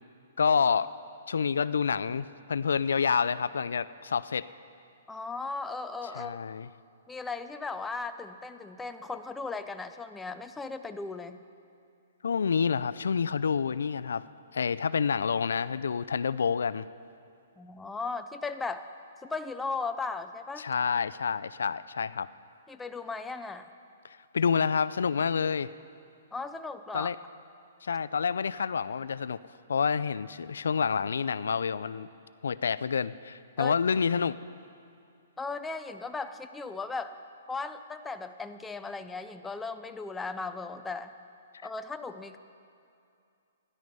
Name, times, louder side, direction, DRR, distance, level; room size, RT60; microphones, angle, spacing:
voice 1, 0.4-0.9 1.3-4.5 6.1-6.7 12.2-14.2 14.5-16.9 20.6-22.3 24.3-25.7 26.9-27.2 27.8-29.4 29.7-32.1 32.4-34.4, left 6 dB, 90° left, 16 dB, 0.3 m, -28 dB
voice 2, 5.1-6.4 7.1-11.4 17.6-18.9 19.2-20.7 22.7-23.7 26.3-27.1 33.6-33.7 35.4-37.1 37.5-41.1 41.6-42.4, left 4 dB, 5° left, 8 dB, 0.4 m, -37 dB
12.5 x 10.5 x 5.4 m, 2.5 s
hypercardioid pair, 160°, 0 cm